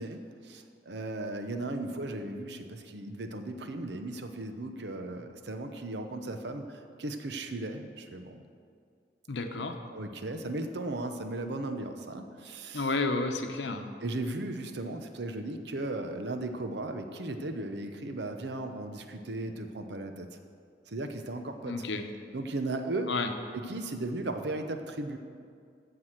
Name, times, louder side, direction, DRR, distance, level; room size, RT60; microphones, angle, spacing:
voice 1, 0.0-8.4 9.8-12.9 14.0-20.4 20.9-21.8 22.3-23.2 23.5-25.2, right 2 dB, 65° right, 7 dB, 0.9 m, -36 dB
voice 2, 9.3-9.7 12.7-13.9 21.7-22.1 23.1-23.3, left 3 dB, 75° left, 6 dB, 0.9 m, -31 dB
14.0 x 4.8 x 7.4 m, 2.2 s
head